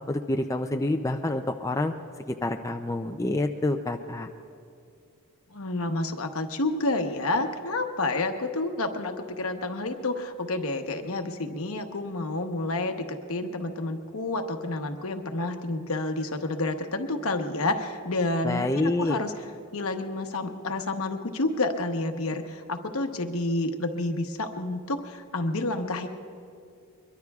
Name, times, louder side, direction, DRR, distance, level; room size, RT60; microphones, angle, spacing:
voice 1, 0.1-1.9 2.3-4.3 18.4-19.2, left 2 dB, 15° left, 4 dB, 0.4 m, -27 dB
voice 2, 5.5-19.4 19.7-26.1, left 2 dB, 70° left, 5 dB, 1.0 m, -29 dB
23.0 x 22.5 x 2.4 m, 2.4 s
head